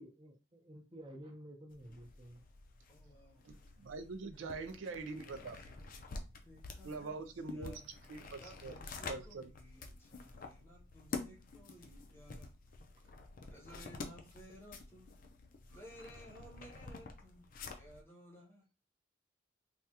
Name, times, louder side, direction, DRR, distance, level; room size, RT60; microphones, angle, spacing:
voice 1, 0.0-2.4, equal, 25° right, 0.6 m, -52 dB
sound 1, 1.7-18.0, left 3 dB, 45° left, 0.4 m, -49 dB
voice 2, 2.9-3.4 4.3-4.8 5.3-6.1 6.4-7.2 7.4-7.9 8.3-12.5 13.5-15.2 15.7-18.7, equal, 10° left, 0.8 m, -58 dB
voice 3, 3.4-5.6 6.8-7.8 8.1-8.7 9.1-9.5, right 3 dB, 80° right, 0.4 m, -44 dB
3.4 x 2.3 x 2.8 m
head